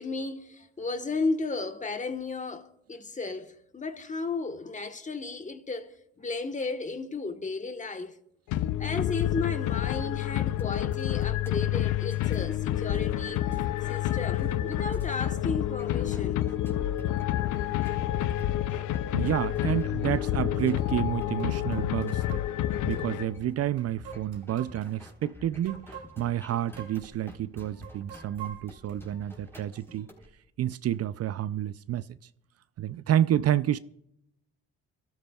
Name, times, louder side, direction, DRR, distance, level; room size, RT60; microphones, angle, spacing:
voice 1, 0.0-8.2 8.8-13.4 13.9-16.4, left 3 dB, 25° left, 1.2 m, -34 dB
sound 1, 8.5-23.6, left 13 dB, 80° left, 0.6 m, -29 dB
sound 2, 10.6-30.3, left 1 dB, 10° left, 3.9 m, -49 dB
sound 3, 19.0-19.1 19.7-19.8 20.8-20.9 21.4-23.0 23.8-25.1 25.6-26.4 26.8-27.0 27.3-27.4 27.8-29.4 29.9-30.0, right 8 dB, 70° right, 2.4 m, -46 dB
voice 2, 19.1-22.4 22.8-25.9 26.2-30.1 30.6-32.0 32.8-33.8, right 11 dB, 55° right, 0.5 m, -29 dB
27.5 x 13.0 x 2.3 m
cardioid pair, 90°, 30 cm